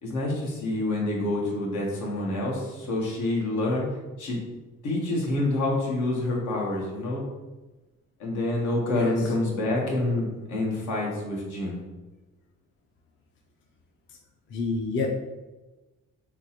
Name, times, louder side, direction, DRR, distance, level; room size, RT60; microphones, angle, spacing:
voice 1, 0.0-3.8 4.2-4.4 4.8-7.2 8.2-11.8, left 2 dB, 75° left, -2 dB, 1.1 m, -27 dB
voice 2, 14.5-15.1, left 4 dB, 40° left, 2 dB, 0.5 m, -27 dB
3.6 x 2.9 x 2.9 m, 1.1 s
cardioid pair, 90°, 30 cm